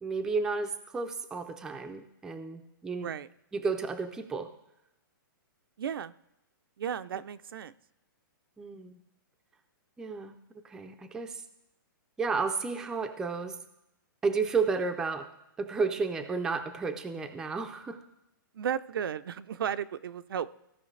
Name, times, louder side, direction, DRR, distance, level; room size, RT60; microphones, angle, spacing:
voice 1, 0.0-3.1 3.5-4.5 8.6-9.0 10.0-10.4 10.6-11.4 12.2-13.6 14.2-15.3 15.6-18.0, right 4 dB, 5° right, 6 dB, 0.4 m, -32 dB
voice 2, 5.8-6.1 6.8-7.7 18.5-20.5, right 8 dB, 80° right, 12 dB, 0.5 m, -34 dB
16.0 x 5.6 x 3.2 m, 0.86 s
hypercardioid pair, 165°, 12 cm